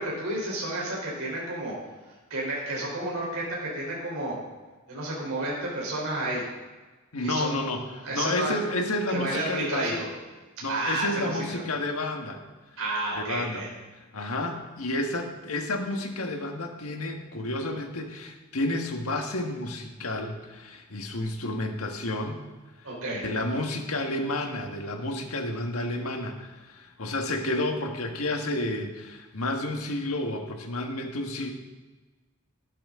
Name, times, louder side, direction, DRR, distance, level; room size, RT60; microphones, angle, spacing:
voice 1, 0.0-1.7 2.3-4.4 4.9-6.4 7.2-7.6 8.0-8.6 9.1-10.1 10.7-11.6 12.8-13.7 22.8-23.2, right 2 dB, 70° right, -4 dB, 3.7 m, -31 dB
voice 2, 7.1-7.9 8.1-10.0 10.6-12.4 13.1-13.6 14.1-22.4 23.2-31.5, left 2 dB, 80° left, 3 dB, 1.5 m, -30 dB
12.0 x 11.0 x 3.7 m, 1.2 s
head